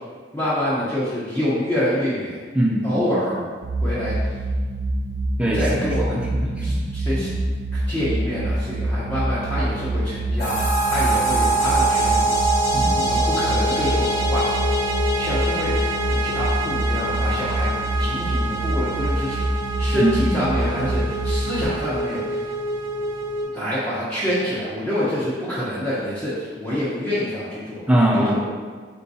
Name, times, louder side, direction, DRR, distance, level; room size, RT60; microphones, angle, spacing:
voice 1, 0.3-2.4 2.8-3.4 3.8-4.2 5.5-6.2 6.6-7.3 7.7-12.4 13.0-14.5 15.2-15.7 16.1-17.7 18.0-19.4 19.8-22.2 23.5-27.8 28.2-28.4, equal, 10° left, -12 dB, 0.8 m, -26 dB
voice 2, 2.5-3.4 5.4-6.8 7.1-7.3 12.7-13.1 19.9-21.1 27.9-28.5, equal, 5° right, -3 dB, 0.4 m, -23 dB
sound 1, 3.6-21.7, right 1 dB, 70° right, 0.5 m, -25 dB
sound 2, 10.4-23.4, right 2 dB, 55° left, 1.0 m, -25 dB
4.3 x 3.5 x 2.7 m, 1.5 s
head